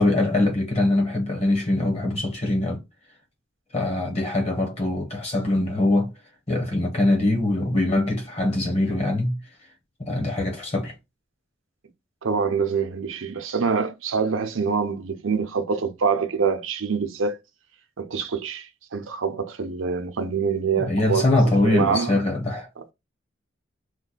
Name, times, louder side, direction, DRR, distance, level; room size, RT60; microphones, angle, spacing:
voice 1, 0.0-2.8 3.7-6.1 6.5-9.4 10.0-10.9 20.8-22.7, left 2 dB, 30° left, 1.1 m, -23 dB
voice 2, 12.2-17.4 18.0-21.3 21.6-22.2 22.8-22.9, right 5 dB, 80° right, 0.6 m, -25 dB
3.1 x 2.2 x 4.0 m
head